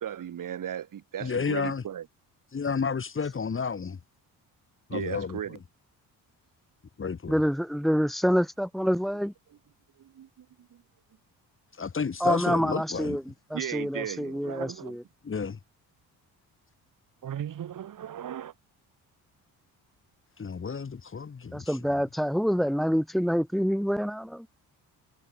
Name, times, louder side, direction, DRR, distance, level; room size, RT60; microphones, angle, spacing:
voice 1, 0.0-2.1 4.9-5.6 10.0-10.8 13.5-15.0 17.2-18.5, right 10 dB, 60° right, 5.4 m, -36 dB
voice 2, 1.2-1.8 2.5-4.0 4.9-5.6 7.0-7.4 11.8-13.2 15.2-15.6 20.4-21.8, left 5 dB, 35° left, 4.9 m, -31 dB
voice 3, 7.3-9.3 12.2-13.2 13.5-15.0 21.5-24.5, equal, ahead, 3.4 m, -27 dB
cardioid pair, 100°, 37 cm